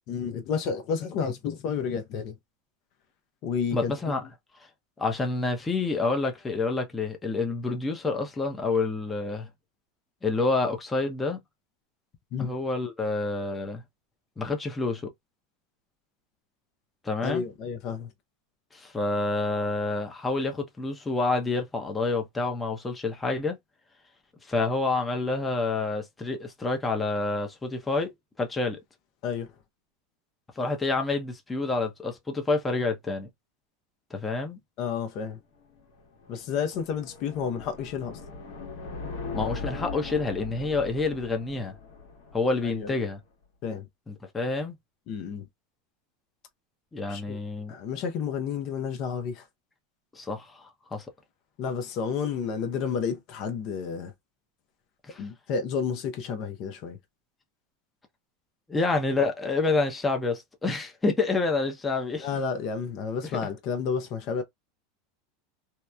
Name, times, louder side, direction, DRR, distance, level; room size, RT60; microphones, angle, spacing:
voice 1, 0.1-2.3 3.4-3.9 12.3-12.5 17.2-18.1 29.2-29.5 34.8-35.4 36.3-38.2 42.6-42.9 43.6-43.9 45.1-45.5 47.1-47.4 47.7-49.5 51.6-54.1 55.2-57.0 62.2-64.4, left 6 dB, 50° left, 0.6 m, -31 dB
voice 2, 3.7-4.2 4.6-4.7 5.0-9.5 10.2-11.4 12.4-13.8 14.4-15.1 17.0-17.4 18.7-23.6 24.4-28.1 28.4-28.8 30.6-33.3 34.1-34.6 39.3-41.7 42.3-43.2 44.1-44.8 46.9-47.7 50.1-51.1 55.0-55.2 58.7-62.3 63.2-63.3, left 3 dB, 15° left, 0.6 m, -28 dB
sound 1, 35.6-43.0, left 4 dB, 70° left, 1.1 m, -40 dB
2.8 x 2.1 x 2.3 m
supercardioid pair, 135°, 0 cm